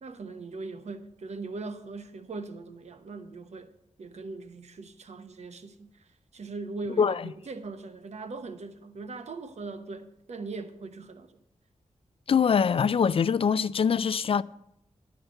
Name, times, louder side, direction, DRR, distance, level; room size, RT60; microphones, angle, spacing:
voice 1, 0.0-3.7 4.0-11.4, right 3 dB, 65° right, 1.0 m, -40 dB
voice 2, 12.3-14.4, left 6 dB, 50° left, 0.4 m, -23 dB
11.5 x 5.8 x 7.8 m
wide cardioid pair, 105°, 12 cm